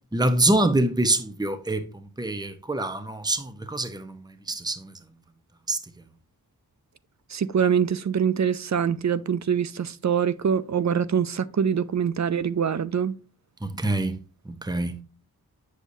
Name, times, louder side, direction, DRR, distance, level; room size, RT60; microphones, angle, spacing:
voice 1, 0.1-4.9 5.7-5.8 13.6-14.2 14.4-15.0, right 2 dB, 10° right, 0.9 m, -25 dB
voice 2, 7.3-13.2, right 7 dB, 50° right, 0.5 m, -24 dB
8.1 x 6.6 x 2.7 m
cardioid pair, 55°, 37 cm